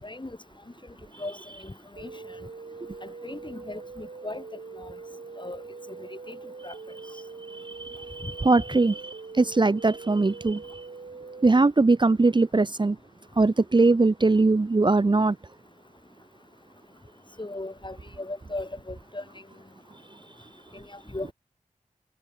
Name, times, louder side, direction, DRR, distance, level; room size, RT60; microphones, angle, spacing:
voice 1, 0.0-0.4 1.2-1.4 1.6-2.1 3.0-4.4 4.7-4.9 5.4-5.6 6.3-6.4 6.6-6.8 8.2-8.3 17.4-19.2 20.7-21.3, left 2 dB, 35° left, 4.7 m, -37 dB
sound 1, 2.0-11.5, right 4 dB, 70° right, 2.6 m, -43 dB
voice 2, 7.5-10.8 11.4-13.0 13.4-15.4, right 3 dB, 35° right, 0.7 m, -21 dB
cardioid pair, 40°, 14 cm